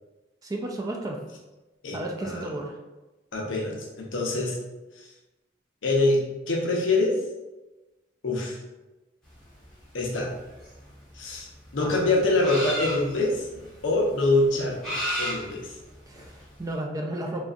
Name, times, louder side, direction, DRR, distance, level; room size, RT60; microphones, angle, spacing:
voice 1, 0.4-1.2 1.9-2.8 11.8-12.2 16.1-17.5, right 1 dB, 20° right, 1 dB, 0.3 m, -33 dB
voice 2, 1.8-2.5 3.3-4.6 5.0-5.1 5.8-7.2 8.2-8.6 9.9-10.3 11.1-11.5 11.7-13.5 13.8-15.7, left 2 dB, 80° left, -2 dB, 0.7 m, -25 dB
sound 1, 9.3-16.7, equal, ahead, 1.1 m, -34 dB
3.9 x 2.3 x 2.5 m, 1.1 s
head